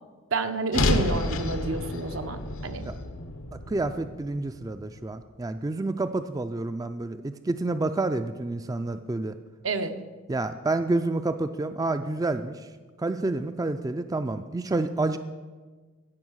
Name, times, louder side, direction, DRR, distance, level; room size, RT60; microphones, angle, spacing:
voice 1, 0.3-2.8 9.6-10.0, right 3 dB, 75° right, 7 dB, 0.9 m, -29 dB
sound 1, 0.7-5.0, left 2 dB, 90° left, 1.0 m, -30 dB
voice 2, 3.5-9.4 10.3-12.7 13.0-15.2, right 2 dB, 20° right, 10 dB, 0.3 m, -29 dB
16.0 x 5.7 x 6.3 m, 1.4 s
head